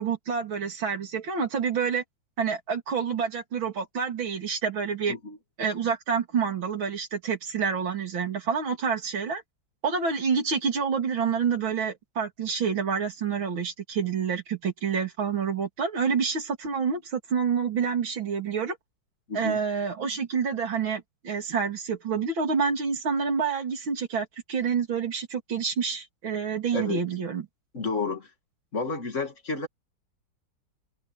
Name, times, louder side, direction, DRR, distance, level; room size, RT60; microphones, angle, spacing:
voice 1, 0.0-2.0 2.4-5.2 5.6-9.4 9.8-18.8 19.3-27.5, right 6 dB, 75° right, 3.5 m, -28 dB
voice 2, 19.3-19.6 26.7-27.3 27.7-28.3 28.7-29.7, left 3 dB, 35° left, 2.5 m, -31 dB
omnidirectional pair, 2.2 m